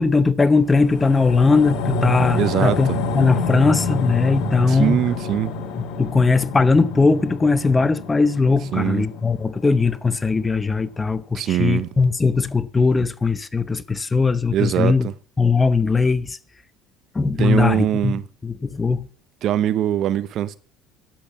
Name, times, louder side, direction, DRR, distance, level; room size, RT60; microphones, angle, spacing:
voice 1, 0.0-5.1 5.8-15.1 15.4-16.4 17.1-19.1, left 4 dB, 20° left, 0.9 m, -19 dB
sound 1, 0.6-11.2 11.6-11.7, left 3 dB, 65° left, 1.9 m, -28 dB
voice 2, 2.4-3.0 4.7-5.5 8.7-9.0 11.3-11.9 14.5-15.1 17.4-18.2 19.4-20.6, right 11 dB, 55° right, 0.7 m, -22 dB
10.5 x 7.7 x 7.2 m
hypercardioid pair, 75°, 0 cm